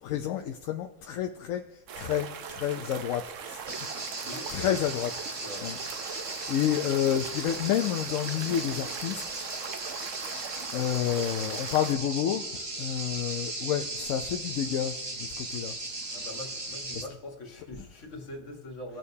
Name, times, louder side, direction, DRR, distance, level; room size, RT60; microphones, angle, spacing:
voice 1, 0.0-3.8 4.1-5.1 5.6-5.8 6.1-9.2 10.3-12.5 12.8-15.7 16.2-16.7 16.9-17.1 17.8-17.9, left 10 dB, 70° left, 0.9 m, -30 dB
sound 1, 1.9-12.0, right 7 dB, 65° right, 1.0 m, -41 dB
sound 2, 3.7-17.0, right 2 dB, 25° right, 0.6 m, -37 dB
voice 2, 4.2-4.8 5.4-5.8 16.1-19.0, left 2 dB, 55° left, 1.8 m, -42 dB
18.5 x 6.5 x 2.7 m
omnidirectional pair, 1.5 m